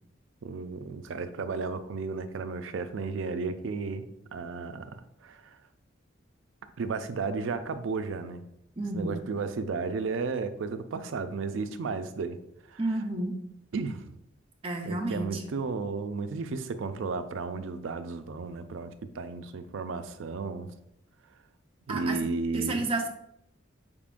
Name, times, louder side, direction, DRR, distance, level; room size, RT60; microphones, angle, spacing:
voice 1, 0.4-4.0 4.3-5.6 6.8-8.4 8.9-12.4 12.7-12.8 13.7-14.1 14.8-20.7 21.9-22.8, right 4 dB, 75° right, 10 dB, 0.4 m, -33 dB
voice 2, 8.8-9.2 12.8-13.3 14.6-15.4 21.9-22.2 22.5-23.1, right 2 dB, 30° right, 2 dB, 0.5 m, -31 dB
5.1 x 3.6 x 2.5 m, 0.77 s
head